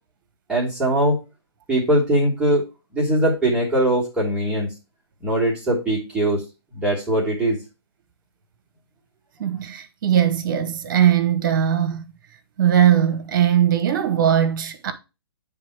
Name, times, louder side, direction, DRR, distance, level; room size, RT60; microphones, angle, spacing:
voice 1, 0.5-1.2 1.7-2.6 2.9-4.7 5.2-6.4 6.7-7.6, right 1 dB, 5° right, 1.7 m, -21 dB
voice 2, 9.4-12.0 12.6-14.9, right 9 dB, 50° right, 1.1 m, -19 dB
8.9 x 3.5 x 4.6 m
figure-of-eight pair, 135°, 14 cm